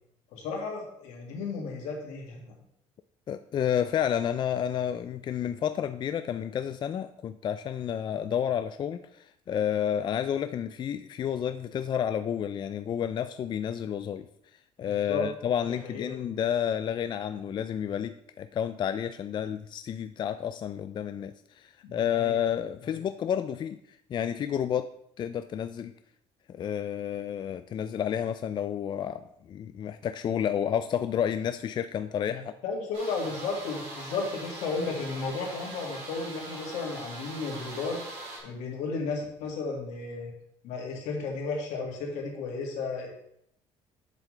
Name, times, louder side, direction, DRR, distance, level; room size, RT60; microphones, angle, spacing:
voice 1, 0.3-2.5 14.9-15.2 15.8-16.3 21.8-22.4 32.3-38.0 38.4-40.3 40.6-43.1, left 4 dB, 85° left, 0 dB, 2.1 m, -34 dB
voice 2, 3.3-14.3 14.8-23.8 24.1-24.9 25.2-25.9 26.5-32.5, left 9 dB, 40° left, 10 dB, 0.4 m, -30 dB
sound 1, 32.9-38.4, right 2 dB, 90° right, 3.4 m, -42 dB
7.5 x 7.4 x 3.3 m, 0.73 s
cardioid pair, 110°, 12 cm